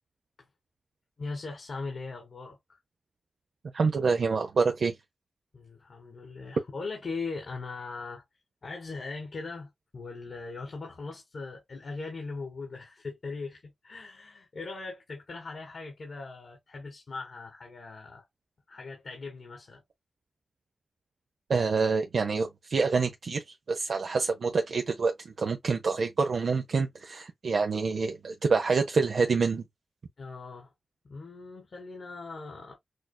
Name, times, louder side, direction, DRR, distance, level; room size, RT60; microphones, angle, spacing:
voice 1, 1.2-2.8 5.5-8.2 8.6-18.3 18.7-19.8 30.2-30.7 31.0-32.7, left 3 dB, 65° left, 1.6 m, -40 dB
voice 2, 3.7-4.9 21.5-29.6, right 4 dB, 75° right, 0.5 m, -27 dB
6.3 x 2.4 x 2.2 m
wide cardioid pair, 90°, 0 cm